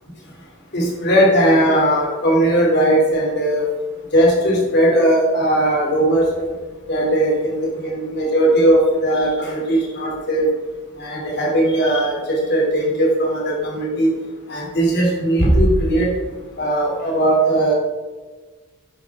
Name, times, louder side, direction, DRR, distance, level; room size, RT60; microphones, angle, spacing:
voice 1, 0.7-3.7 4.1-6.5 6.9-10.4 11.0-14.1 14.5-16.1 16.6-17.7, right 1 dB, 50° left, -2 dB, 3.0 m, -18 dB
10.5 x 10.0 x 3.6 m, 1.4 s
head